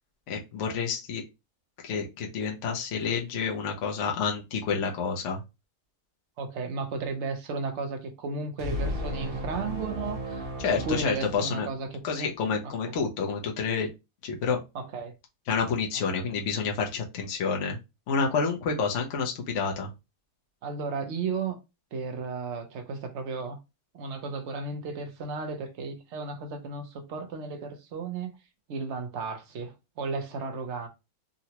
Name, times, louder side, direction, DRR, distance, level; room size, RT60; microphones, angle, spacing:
voice 1, 0.3-1.2 1.8-5.4 10.6-11.7 12.0-13.9 14.2-14.6 15.5-17.8 18.1-19.9, left 5 dB, 60° left, 1.0 m, -29 dB
voice 2, 6.4-12.0 12.6-12.9 14.7-15.1 16.2-16.4 20.6-21.6 21.9-23.6 23.9-28.4 28.7-30.9, right 4 dB, 60° right, 0.9 m, -34 dB
sound 1, 8.6-12.1, equal, 45° right, 1.1 m, -35 dB
3.8 x 2.1 x 2.8 m
omnidirectional pair, 1.5 m